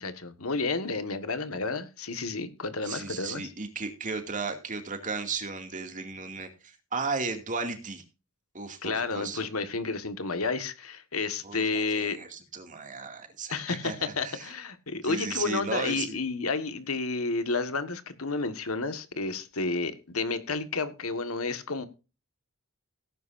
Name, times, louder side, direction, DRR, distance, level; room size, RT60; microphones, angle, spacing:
voice 1, 0.0-3.4 8.8-12.2 13.5-21.9, left 3 dB, 90° left, 10 dB, 1.7 m, -31 dB
voice 2, 2.8-8.0 8.5-9.5 11.4-14.0 14.2-14.5 15.0-16.1, right 4 dB, 40° right, 6 dB, 2.4 m, -35 dB
17.5 x 10.0 x 2.6 m, 0.31 s
head